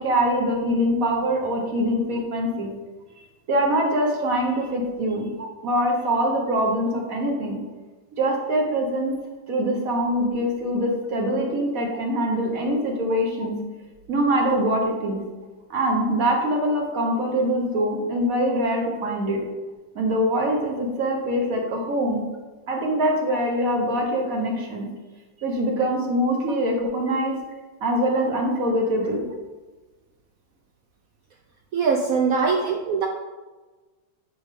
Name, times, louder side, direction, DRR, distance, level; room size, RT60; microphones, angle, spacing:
voice 1, 0.0-2.7 3.5-5.3 5.6-7.6 8.2-9.1 9.5-13.5 14.1-15.2 15.7-19.4 19.9-22.2 22.7-24.9 25.4-27.4 27.8-29.2, equal, 50° right, 0 dB, 1.5 m, -23 dB
voice 2, 31.7-33.1, right 5 dB, 70° right, 3 dB, 0.8 m, -22 dB
9.6 x 3.9 x 3.7 m, 1.2 s
omnidirectional pair, 2.1 m